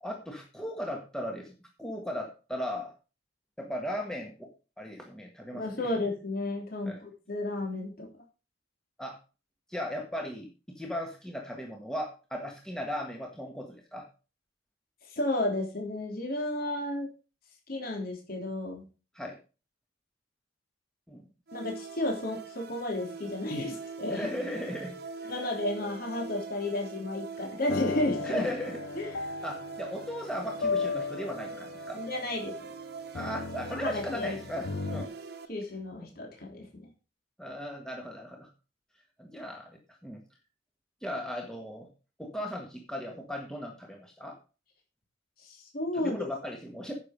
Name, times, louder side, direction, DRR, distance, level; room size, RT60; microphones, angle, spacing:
voice 1, 0.0-2.9 3.6-5.9 6.8-7.0 9.0-9.2 9.7-14.1 19.1-19.4 21.1-21.3 24.1-25.0 28.2-28.8 29.4-32.0 33.1-35.1 37.4-38.5 39.2-40.2 41.0-41.9 42.2-44.4 45.9-46.9, left 1 dB, 5° left, 1 dB, 1.5 m, -37 dB
voice 2, 5.5-8.1 15.1-17.1 17.7-18.8 21.5-24.3 25.3-28.4 29.0-29.2 31.9-32.5 33.7-34.4 35.5-36.9 45.4-46.2, left 1 dB, 50° left, 1 dB, 3.3 m, -32 dB
sound 1, 21.5-35.5, right 5 dB, 60° right, 1.5 m, -43 dB
sound 2, 27.7-35.0, left 4 dB, 80° left, 0.7 m, -36 dB
10.5 x 6.9 x 5.1 m, 0.33 s
head